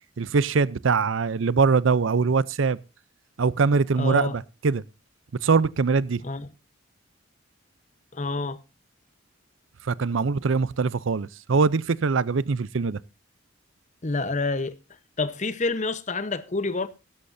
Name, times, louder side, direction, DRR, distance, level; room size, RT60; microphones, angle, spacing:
voice 1, 0.2-2.8 3.4-4.8 5.4-6.2 9.8-13.0, right 4 dB, 70° right, 0.5 m, -22 dB
voice 2, 4.0-4.4 6.2-6.5 8.1-8.6 14.0-14.7 15.2-16.9, left 3 dB, 35° left, 1.0 m, -27 dB
17.0 x 13.0 x 2.6 m
head